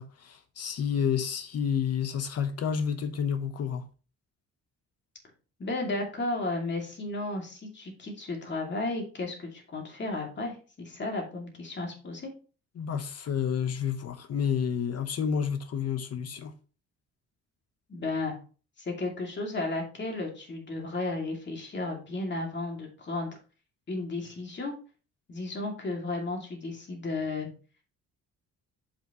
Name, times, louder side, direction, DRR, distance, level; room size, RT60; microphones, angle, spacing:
voice 1, 0.0-3.8 12.8-16.5, left 7 dB, 55° left, 1.0 m, -30 dB
voice 2, 5.6-12.3 17.9-18.3 18.8-23.4 23.9-24.7 25.3-27.5, left 2 dB, 35° left, 2.5 m, -33 dB
7.1 x 5.8 x 3.0 m
cardioid pair, 90°, 30 cm